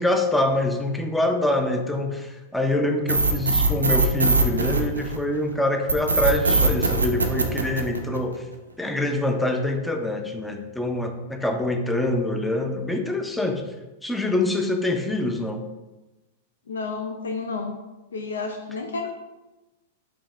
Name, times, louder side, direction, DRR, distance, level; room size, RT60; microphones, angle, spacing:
voice 1, 0.0-8.4 8.8-13.6 14.0-15.6, left 1 dB, 5° left, 5 dB, 0.5 m, -25 dB
sound 1, 3.1-5.4 5.9-8.3, right 3 dB, 80° right, 0.5 m, -21 dB
voice 2, 16.7-17.8 18.1-19.1, left 4 dB, 70° left, 3 dB, 0.4 m, -30 dB
5.2 x 2.7 x 3.3 m, 1.1 s
figure-of-eight pair, 95°, 0 cm